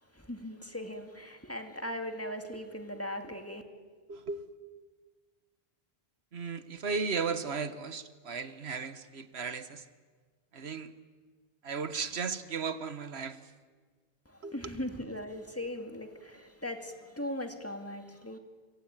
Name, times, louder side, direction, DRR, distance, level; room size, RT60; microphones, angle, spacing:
voice 1, 0.1-3.6 14.3-18.4, left 1 dB, 15° left, 2.3 m, -39 dB
voice 2, 4.1-4.5 6.3-9.8 10.5-10.9 11.6-13.4 14.4-14.6, right 5 dB, 85° right, 1.5 m, -35 dB
26.0 x 23.5 x 9.0 m
omnidirectional pair, 1.1 m